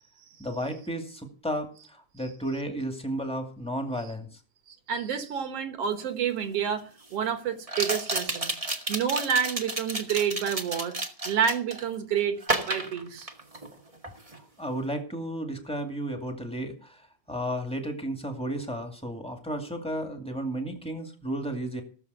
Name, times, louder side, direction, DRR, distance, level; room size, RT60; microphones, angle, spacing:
voice 1, 0.4-4.4 14.6-17.0 17.3-21.8, right 1 dB, ahead, 4 dB, 1.6 m, -33 dB
voice 2, 4.7-8.5 8.9-11.0 11.3-13.3, right 7 dB, 55° right, 8 dB, 2.3 m, -29 dB
sound 1, 6.0-6.1 7.7-11.9 12.4-13.7 14.0-14.4, right 2 dB, 20° right, 0.9 m, -31 dB
17.5 x 7.3 x 6.9 m, 0.40 s
omnidirectional pair, 3.5 m